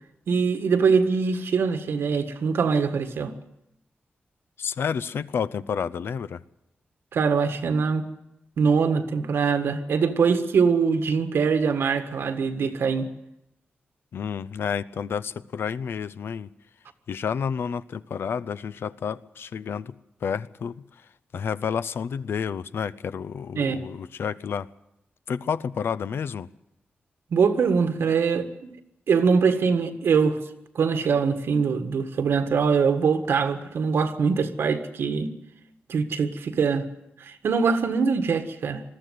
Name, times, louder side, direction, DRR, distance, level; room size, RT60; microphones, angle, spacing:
voice 1, 0.3-3.3 7.1-8.1 8.6-13.1 23.5-23.8 27.3-28.7 29.1-30.4 30.7-35.3 35.9-36.8 37.2-38.8, right 5 dB, 85° right, 1.7 m, -23 dB
voice 2, 4.6-6.4 14.1-16.5 17.1-19.9 20.2-20.8 21.3-24.7 25.3-26.5, left 7 dB, 75° left, 0.7 m, -30 dB
21.0 x 14.0 x 9.4 m
wide cardioid pair, 170°, 4 cm